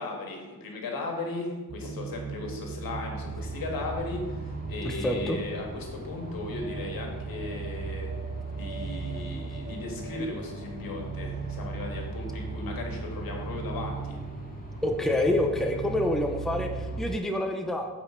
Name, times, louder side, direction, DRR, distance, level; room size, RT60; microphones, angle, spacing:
voice 1, 0.0-8.1 8.5-14.2, left 2 dB, 70° left, 1 dB, 1.9 m, -36 dB
sound 1, 1.7-17.2, right 5 dB, 30° right, 0.5 m, -37 dB
sound 2, 3.1-17.0, left 1 dB, 25° left, 1.7 m, -43 dB
voice 2, 4.8-5.4 14.8-17.9, left 1 dB, ahead, 3 dB, 0.8 m, -27 dB
8.6 x 5.3 x 4.7 m, 1.3 s
cardioid pair, 95°, 37 cm